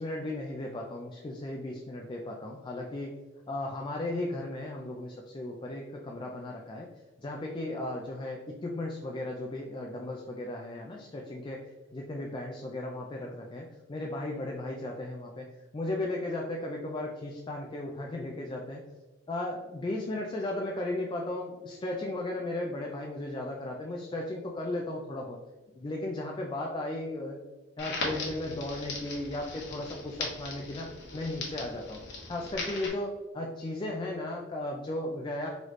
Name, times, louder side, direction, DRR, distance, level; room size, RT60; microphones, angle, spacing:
voice 1, 0.0-3.1 3.5-6.9 7.2-11.7 11.9-18.9 19.3-25.4 25.7-27.4 27.8-32.0 32.3-35.5, left 1 dB, 25° left, 0 dB, 0.4 m, -35 dB
Crackle, 27.8-32.9, left 3 dB, 65° left, 1.1 m, -38 dB
4.0 x 3.1 x 3.0 m, 1.2 s
head